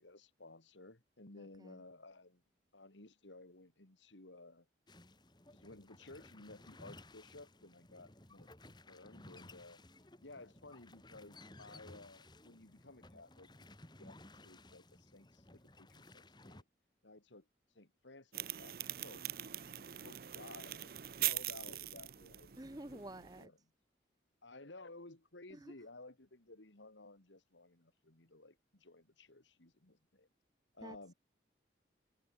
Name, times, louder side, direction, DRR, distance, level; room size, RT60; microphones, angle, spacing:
voice 1, 0.0-2.4 2.7-4.7 5.5-9.9 10.2-13.5 14.0-16.6 17.0-17.5 17.7-19.2 19.8-22.5 22.9-23.0 23.4-23.6 24.4-30.3 30.7-31.1, left 2 dB, 80° left, 2.6 m, -56 dB
voice 2, 1.4-1.8 22.6-23.5 25.5-25.7 30.8-31.0, right 1 dB, 20° right, 0.9 m, -50 dB
sound 1, 4.9-16.6, left 2 dB, 25° left, 2.2 m, -58 dB
sound 2, 18.3-23.4, right 14 dB, 50° right, 0.6 m, -42 dB
head